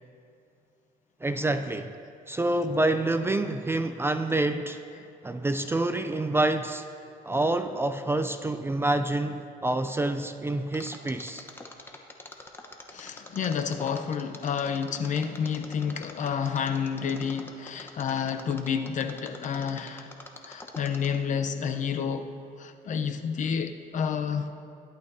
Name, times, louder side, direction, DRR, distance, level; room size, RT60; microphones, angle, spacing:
voice 1, 1.2-1.9 2.3-4.8 5.2-6.8 7.2-11.5, right 2 dB, 15° right, 0.4 m, -27 dB
Mechanisms, 10.7-21.3 21.7-21.8, left 2 dB, 15° left, 1.0 m, -45 dB
voice 2, 12.9-20.1 20.5-24.5, left 7 dB, 45° left, 0.7 m, -30 dB
17.0 x 11.5 x 2.7 m
cardioid pair, 110°, 17 cm